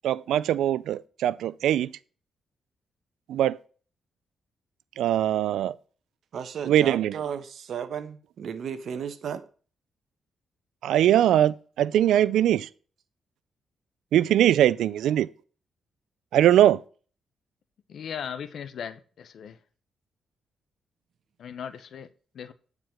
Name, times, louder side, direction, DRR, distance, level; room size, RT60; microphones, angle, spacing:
voice 1, 0.0-1.9 3.3-3.6 5.0-5.8 6.7-7.1 10.8-12.7 14.1-15.3 16.3-16.8, right 11 dB, 85° right, 0.3 m, -21 dB
voice 2, 6.3-9.4, right 7 dB, 70° right, 1.0 m, -34 dB
voice 3, 17.9-19.6 21.4-22.1 22.3-22.5, left 8 dB, 70° left, 0.9 m, -37 dB
9.2 x 4.9 x 6.3 m
cardioid pair, 75°, 0 cm